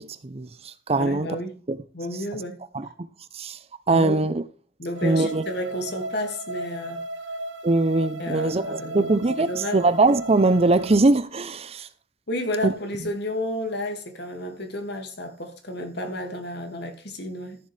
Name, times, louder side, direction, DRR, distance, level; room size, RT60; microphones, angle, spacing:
voice 1, 0.0-1.3 1.7-1.8 2.7-2.9 3.3-3.6 3.9-4.4 5.0-5.4 7.6-11.9 12.6-12.7, right 2 dB, 35° right, 0.6 m, -22 dB
voice 2, 0.9-1.5 1.9-2.6 3.9-4.3 4.8-7.0 8.2-9.1 9.4-9.8 12.3-17.6, left 1 dB, 60° left, 2.2 m, -31 dB
sound 1, 4.9-10.9, right 1 dB, 85° right, 1.7 m, -36 dB
14.0 x 7.0 x 3.3 m
head